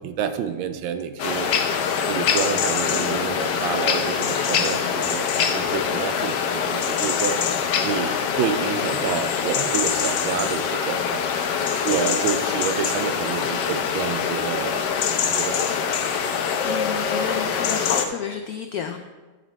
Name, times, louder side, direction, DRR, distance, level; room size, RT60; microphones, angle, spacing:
voice 1, 0.0-1.5 2.0-5.2 5.5-7.4 7.8-11.2 11.8-14.9 15.2-15.9, right 7 dB, 85° right, 9 dB, 1.5 m, -28 dB
sound 1, 1.2-18.1, left 7 dB, 70° left, 1.3 m, -24 dB
voice 2, 16.6-19.0, left 7 dB, 85° left, 6 dB, 0.8 m, -31 dB
10.5 x 8.1 x 3.2 m, 1.2 s
omnidirectional pair, 2.1 m